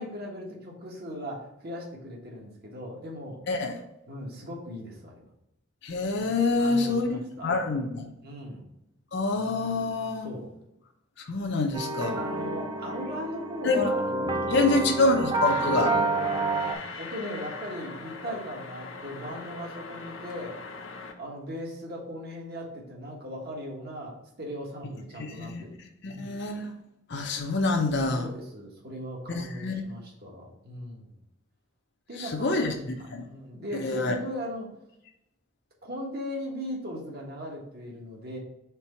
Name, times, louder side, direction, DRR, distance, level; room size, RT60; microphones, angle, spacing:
voice 1, 0.0-3.4 4.1-5.3 6.6-7.5 8.2-8.6 10.2-10.5 12.1-16.1 16.7-20.6 21.2-25.7 26.0-26.3 28.1-31.2 32.1-32.8 33.2-34.7 35.8-38.4, equal, 50° right, -1 dB, 1.6 m, -38 dB
voice 2, 5.8-8.1 9.1-10.3 11.3-12.2 13.6-13.9 14.5-15.9 25.2-25.6 26.0-26.7 27.1-28.3 29.3-29.8 32.2-33.2 33.8-34.1, left 3 dB, 60° left, 3 dB, 0.7 m, -26 dB
sound 1, 11.7-16.7, right 3 dB, 20° right, 0.6 m, -29 dB
sound 2, 15.4-21.1, left 4 dB, 80° left, 1.0 m, -41 dB
4.5 x 4.2 x 5.7 m, 0.84 s
head